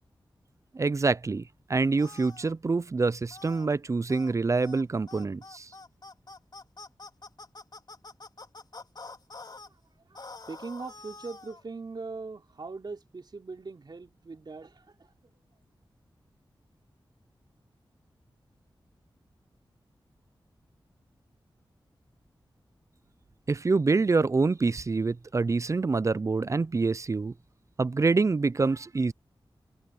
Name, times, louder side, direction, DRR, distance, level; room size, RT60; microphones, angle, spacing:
voice 1, 0.7-1.4 1.7-5.7 23.5-27.3 27.8-29.1, right 3 dB, 35° right, 0.4 m, -26 dB
sound 1, 2.0-2.5 3.3-3.7 4.1-4.3 4.6-4.8 5.1-9.7 10.1-11.6, left 3 dB, 50° left, 3.5 m, -46 dB
voice 2, 9.7-10.0 10.4-15.1, right 4 dB, 55° right, 4.1 m, -41 dB
wide cardioid pair, 95°, 9 cm